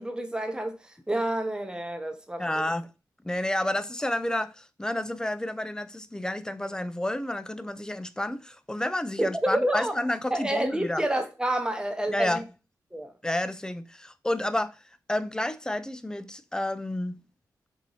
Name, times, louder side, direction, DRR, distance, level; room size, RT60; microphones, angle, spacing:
voice 1, 0.0-2.4 9.2-9.9 10.3-12.4 12.9-13.1, right 1 dB, 10° right, 1.0 m, -29 dB
voice 2, 2.4-2.9 3.2-11.0 12.1-12.4 13.2-14.8 15.1-17.2, left 1 dB, 10° left, 0.4 m, -30 dB
4.6 x 2.7 x 2.7 m
cardioid pair, 55°, 8 cm